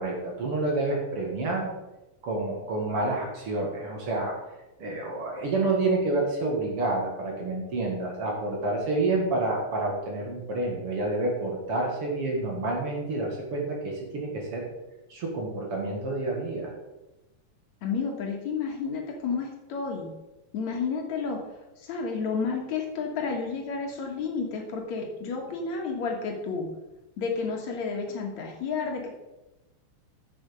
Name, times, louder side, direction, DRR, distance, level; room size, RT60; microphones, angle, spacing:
voice 1, 0.0-1.7 2.2-4.4 4.8-14.7 15.1-16.7, right 2 dB, 50° right, 0 dB, 2.6 m, -28 dB
voice 2, 17.8-20.1 20.5-21.4 21.8-26.7 27.2-29.1, left 5 dB, 65° left, 1 dB, 2.7 m, -31 dB
10.5 x 7.2 x 5.1 m, 1.0 s
omnidirectional pair, 3.5 m